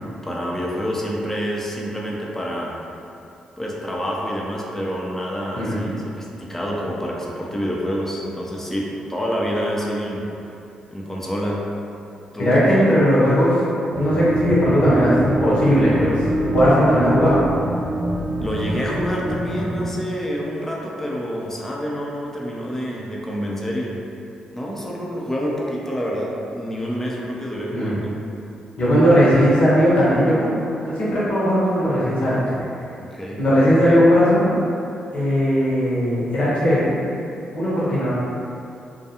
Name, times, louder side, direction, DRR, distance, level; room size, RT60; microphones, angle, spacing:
voice 1, 0.0-2.8 3.6-10.2 10.9-11.6 12.3-12.5 12.8-12.9 18.4-24.0 24.5-28.1 33.0-33.4 33.8-34.0, equal, 15° left, -3 dB, 0.6 m, -27 dB
voice 2, 5.5-5.9 12.4-13.6 14.0-17.4 27.7-28.0 28.8-30.6 30.8-32.4 33.4-34.5 35.1-37.0 37.5-38.1, equal, 55° left, -9 dB, 1.0 m, -18 dB
sound 1, 13.9-19.9, right 1 dB, 50° right, 0.6 m, -25 dB
2.4 x 2.2 x 2.8 m, 2.7 s
hypercardioid pair, 40°, 3 cm